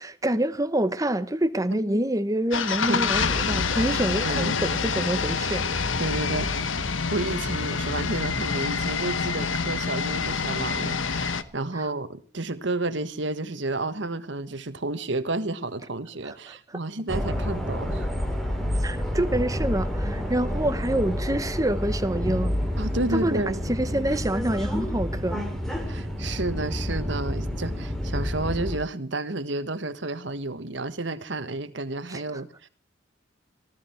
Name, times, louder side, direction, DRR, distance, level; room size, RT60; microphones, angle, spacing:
voice 1, 0.0-5.6 11.8-11.9 16.2-16.3 16.7-16.8 18.8-22.5 23.1-25.4 32.1-32.2, right 1 dB, 15° right, 1.0 m, -27 dB
sound 1, 2.5-11.4, left 5 dB, 75° left, 1.2 m, -27 dB
voice 2, 4.2-4.6 6.0-6.8 7.1-18.1 22.8-23.6 25.9-32.7, right 2 dB, 60° right, 1.4 m, -31 dB
sound 2, 17.1-28.8, equal, ahead, 2.7 m, -29 dB
19.5 x 13.5 x 4.5 m
head